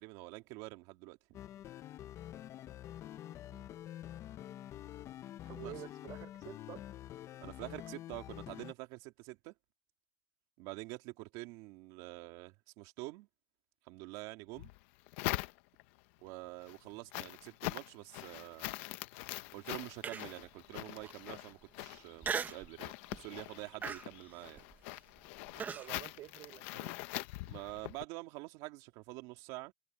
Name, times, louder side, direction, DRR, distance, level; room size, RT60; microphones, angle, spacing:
voice 1, 0.0-1.4 5.6-5.7 7.4-9.5 10.6-13.3 13.8-14.7 16.2-18.7 19.5-24.6 27.5-29.7, right 21 dB, 75° right, 2.8 m, -47 dB
sound 1, 1.3-8.7, left 12 dB, 45° left, 0.7 m, -47 dB
voice 2, 3.0-3.7 5.4-6.8 25.5-27.0, right 15 dB, 55° right, 4.1 m, -50 dB
Walking on soil with leaves, 14.5-16.0 16.5-28.0, left 20 dB, 85° left, 1.0 m, -43 dB
Human voice, 20.0-20.5 21.0-21.1 22.2-22.7 23.1-23.4 23.8-25.9, right 6 dB, 25° right, 1.0 m, -39 dB
cardioid pair, 130°, 7 cm